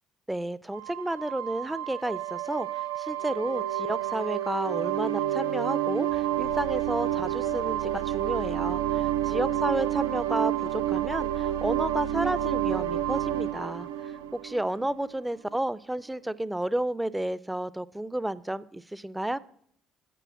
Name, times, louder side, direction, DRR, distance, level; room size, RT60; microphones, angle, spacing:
voice 1, 0.3-13.9 14.3-19.4, right 1 dB, 10° right, 19 dB, 0.4 m, -31 dB
sound 1, 0.7-15.2, right 12 dB, 85° right, 0.4 m, -29 dB
6.9 x 5.5 x 7.4 m, 0.67 s
hypercardioid pair, 60°, 0 cm